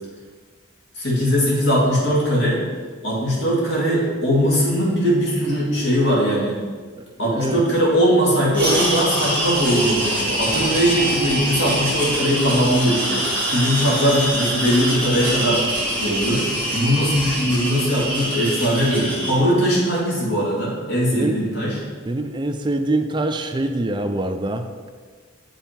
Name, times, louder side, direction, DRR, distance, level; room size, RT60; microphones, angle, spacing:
voice 1, 1.0-2.6 3.0-6.6 7.2-15.7 16.0-21.8, equal, 65° left, -5 dB, 2.4 m, -20 dB
voice 2, 7.0-7.6 21.1-21.4 22.1-24.9, right 2 dB, 20° right, 6 dB, 0.4 m, -25 dB
sound 1, 8.5-19.4, right 1 dB, 5° left, 2.1 m, -24 dB
7.1 x 5.5 x 4.4 m, 1.5 s
head